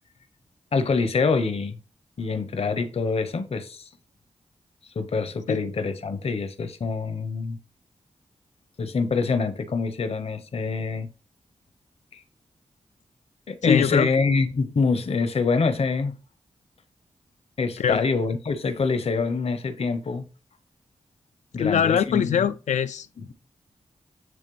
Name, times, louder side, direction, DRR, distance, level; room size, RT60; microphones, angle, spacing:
voice 1, 0.7-1.8 2.2-3.9 5.0-7.6 8.8-11.1 12.1-12.2 13.5-16.2 17.6-20.3 21.5-22.5, left 4 dB, 55° left, 0.8 m, -25 dB
voice 2, 13.6-14.1 17.8-18.0 21.6-23.1, left 8 dB, 75° left, 0.4 m, -22 dB
9.0 x 3.3 x 3.1 m
cardioid pair, 65°, 12 cm